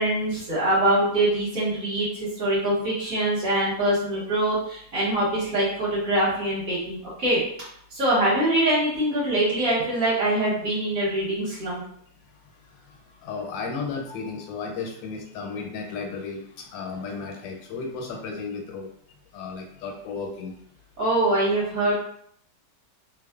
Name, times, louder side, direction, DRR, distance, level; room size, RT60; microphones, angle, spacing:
voice 1, 0.0-2.1 2.4-7.4 8.0-11.8 21.0-21.9, right 1 dB, 55° right, -8 dB, 1.4 m, -23 dB
voice 2, 13.2-18.9 19.3-20.5, left 4 dB, 85° left, 2 dB, 1.3 m, -34 dB
3.1 x 2.0 x 2.3 m, 0.64 s
omnidirectional pair, 2.0 m